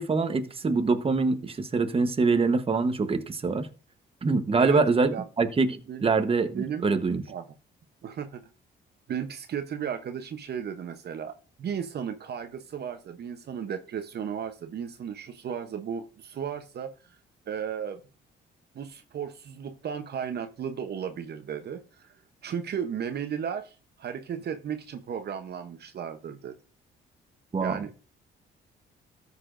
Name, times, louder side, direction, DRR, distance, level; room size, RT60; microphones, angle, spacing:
voice 1, 0.0-3.7 4.2-7.2 27.5-27.8, right 4 dB, 30° right, 1.0 m, -24 dB
voice 2, 6.5-6.9 7.3-7.4 8.0-8.4 9.1-11.3 11.6-16.9 17.5-18.0 18.7-22.1 22.4-26.5 27.6-27.9, right 8 dB, 55° right, 0.8 m, -35 dB
13.5 x 6.7 x 2.5 m
cardioid pair, 90°, 20 cm